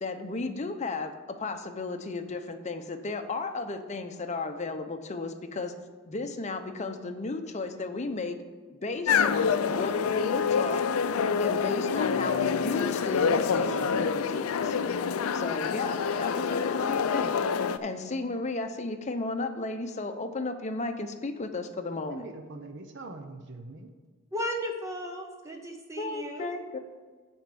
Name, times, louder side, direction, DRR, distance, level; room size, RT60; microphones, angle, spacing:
voice 1, 0.0-5.7 6.1-8.4 8.7-10.8 11.4-14.8 15.3-17.4 17.8-22.2 26.0-26.8, left 3 dB, 35° left, 7 dB, 0.7 m, -34 dB
sound 1, 9.1-17.8, left 6 dB, 90° left, 0.4 m, -27 dB
voice 2, 22.0-23.9, right 2 dB, 60° right, 6 dB, 0.7 m, -43 dB
voice 3, 24.3-26.5, equal, 15° right, 3 dB, 0.6 m, -35 dB
9.4 x 4.4 x 6.8 m, 1.4 s
head